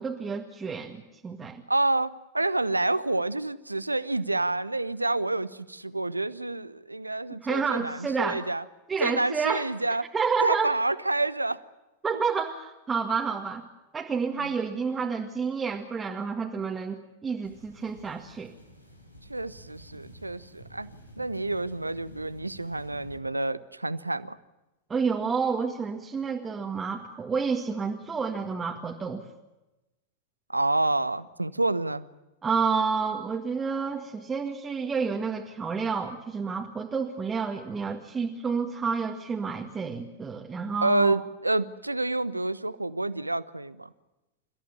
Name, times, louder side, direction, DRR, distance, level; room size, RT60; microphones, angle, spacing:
voice 1, 0.0-1.6 7.4-8.4 8.9-9.6 10.1-10.7 12.0-13.6 13.9-18.5 24.9-29.2 32.4-41.2, right 5 dB, 15° right, 0 dB, 2.0 m, -29 dB
voice 2, 1.7-8.6 9.0-10.0 10.4-11.6 14.4-14.5 19.3-20.9 21.2-24.4 30.5-32.1 40.8-43.9, right 2 dB, 85° right, 17 dB, 0.9 m, -28 dB
sound 1, 17.4-23.2, equal, 85° left, 3.1 m, -50 dB
29.0 x 14.5 x 9.6 m, 1.0 s
figure-of-eight pair, 90°, 0 cm